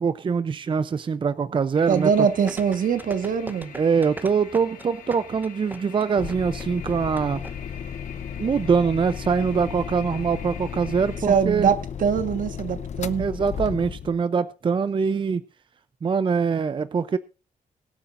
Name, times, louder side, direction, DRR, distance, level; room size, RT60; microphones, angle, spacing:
voice 1, 0.0-2.1 3.7-7.4 8.4-11.7 13.2-15.4 16.0-17.2, right 5 dB, 35° right, 0.6 m, -23 dB
sound 1, 1.7-11.2, left 7 dB, 75° left, 3.8 m, -45 dB
voice 2, 1.9-3.7 11.3-13.3, right 7 dB, 70° right, 1.5 m, -23 dB
sound 2, 2.5-7.5 7.8-7.9, right 2 dB, 15° right, 0.9 m, -38 dB
sound 3, 6.2-14.2, left 7 dB, 55° left, 0.7 m, -34 dB
23.0 x 8.3 x 2.6 m
cardioid pair, 115°, 14 cm